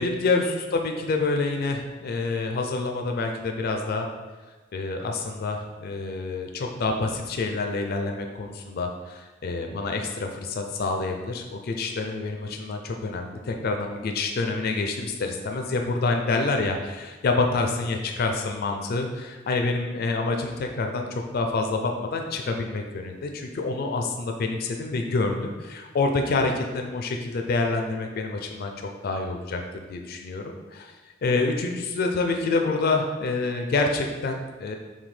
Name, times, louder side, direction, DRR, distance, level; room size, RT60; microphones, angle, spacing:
voice 1, 0.0-4.1 4.7-8.9 9.4-28.7 29.0-29.6 29.9-31.0 31.2-34.8, left 3 dB, 50° left, 4 dB, 0.4 m, -27 dB
5.9 x 2.2 x 3.3 m, 1.3 s
head